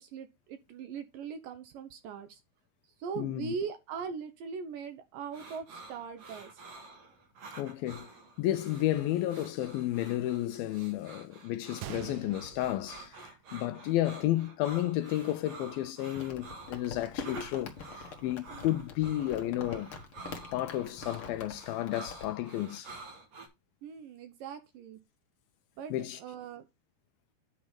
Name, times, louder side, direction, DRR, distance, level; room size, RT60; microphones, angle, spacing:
voice 1, 0.0-2.4 3.0-6.5 23.8-25.0 25.8-26.6, right 6 dB, 70° right, 2.2 m, -40 dB
voice 2, 3.2-3.5 7.6-8.1 8.4-19.9 20.5-22.9 25.9-26.2, left 14 dB, 80° left, 2.3 m, -32 dB
sound 1, 5.3-23.5, right 3 dB, 50° right, 2.3 m, -49 dB
Gunshot gunfire, 11.8-13.8 14.1-14.2 14.9-15.1, right 13 dB, 90° right, 1.9 m, -45 dB
Crumpling crinkling, 16.2-22.3, left 6 dB, 55° left, 1.5 m, -44 dB
9.7 x 4.2 x 5.0 m
omnidirectional pair, 4.7 m